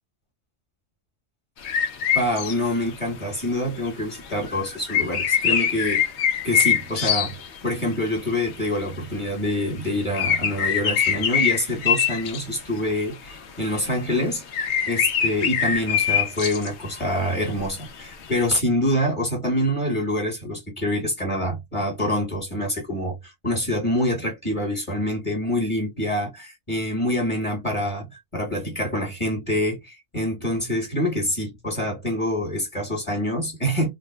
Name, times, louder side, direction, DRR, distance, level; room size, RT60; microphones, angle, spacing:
sound 1, 1.6-2.6 2.8-3.0 3.4-3.5 3.8-3.9 4.3-7.9 8.2-8.5 8.8-8.9 9.2-9.3 10.1-12.4 13.1-13.3 13.7-13.8 14.1-14.2 14.5-17.0 17.3-18.4, left 8 dB, 85° left, 0.9 m, -23 dB
voice 1, 2.1-6.0 6.4-7.4 7.6-33.9, left 1 dB, 30° left, 1.4 m, -26 dB
3.4 x 2.2 x 2.2 m
omnidirectional pair, 1.1 m